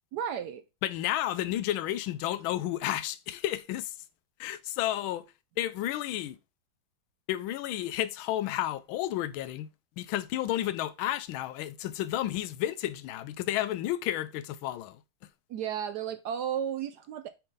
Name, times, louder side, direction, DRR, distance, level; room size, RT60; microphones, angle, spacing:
voice 1, 0.1-0.6 15.5-17.3, right 9 dB, 75° right, 0.9 m, -33 dB
voice 2, 0.8-4.0 4.4-5.3 5.6-6.4 7.3-9.7 10.0-15.0, left 13 dB, 85° left, 1.4 m, -31 dB
6.5 x 4.0 x 3.8 m
omnidirectional pair, 2.2 m